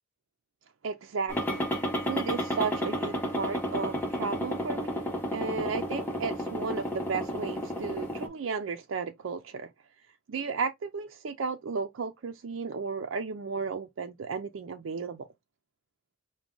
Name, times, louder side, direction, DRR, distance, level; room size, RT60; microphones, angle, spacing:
voice 1, 0.8-5.1 5.3-9.7 10.3-15.3, right 5 dB, 70° right, 0.4 m, -34 dB
sound 1, 1.3-8.3, equal, 10° left, 1.1 m, -32 dB
5.9 x 2.2 x 3.7 m
head